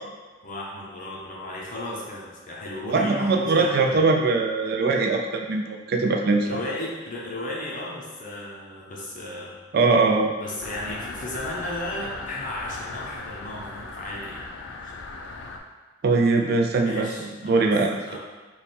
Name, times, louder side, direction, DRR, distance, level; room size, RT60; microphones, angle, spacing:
voice 1, 0.4-4.1 6.4-9.6 10.4-14.4 14.8-15.0 16.8-17.7 18.1-18.2, left 1 dB, 45° left, -4 dB, 0.8 m, -35 dB
voice 2, 2.9-6.5 9.7-10.3 16.0-18.2, right 3 dB, 55° right, 2 dB, 0.4 m, -21 dB
sound 1, 10.6-15.6, left 3 dB, 75° left, 0.4 m, -38 dB
3.4 x 2.2 x 4.1 m, 1.3 s
head